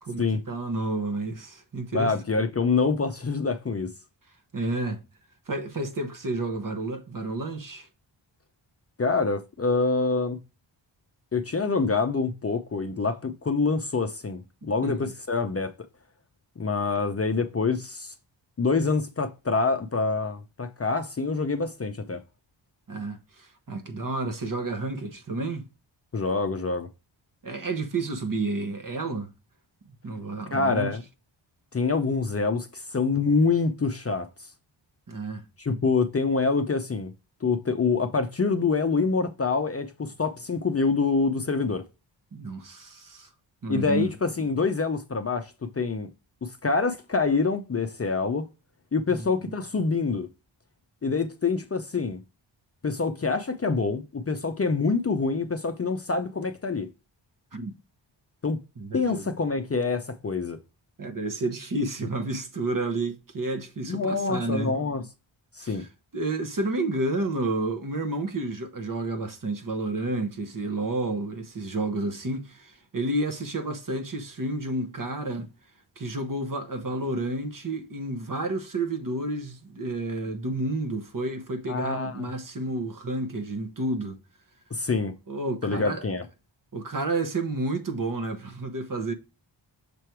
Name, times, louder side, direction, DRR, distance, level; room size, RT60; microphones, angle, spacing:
voice 1, 0.0-2.1 4.5-5.0 5.5-7.9 14.8-15.0 22.9-25.7 27.4-29.3 29.9-31.0 35.1-35.4 42.3-43.3 43.6-44.1 49.1-49.5 57.5-57.7 58.8-59.3 61.0-64.7 65.6-65.9 66.1-75.5 76.0-84.2 85.3-86.0 86.7-89.1, right 2 dB, 45° right, 1.1 m, -30 dB
voice 2, 1.9-3.9 9.0-10.4 11.3-15.7 16.6-18.1 18.6-22.2 26.1-26.9 30.5-31.0 31.7-34.3 35.6-37.1 37.4-41.8 43.7-46.1 46.4-48.5 48.9-50.3 51.0-52.2 52.8-56.9 58.4-58.6 58.9-60.6 63.9-65.0 65.5-65.8 81.7-82.3 84.7-85.1 85.6-86.2, left 4 dB, 30° left, 0.5 m, -26 dB
6.8 x 3.2 x 4.5 m
wide cardioid pair, 100°, 46 cm